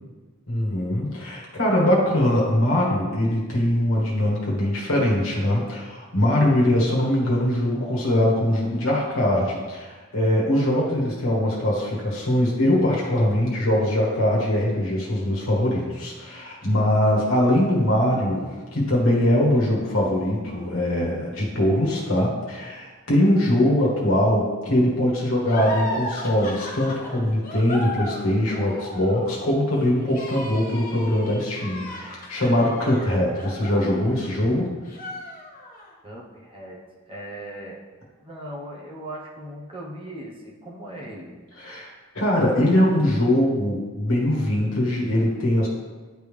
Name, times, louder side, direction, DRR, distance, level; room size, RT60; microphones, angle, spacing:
voice 1, 0.5-34.7 41.6-41.9 42.1-45.7, left 1 dB, 90° left, -4 dB, 1.4 m, -22 dB
sound 1, 25.4-34.5 34.9-35.9, left 1 dB, 40° left, 1.2 m, -36 dB
voice 2, 36.0-36.8 37.1-37.8 38.2-41.3, right 1 dB, 25° right, -4 dB, 1.0 m, -38 dB
10.0 x 3.5 x 3.3 m, 1.3 s
head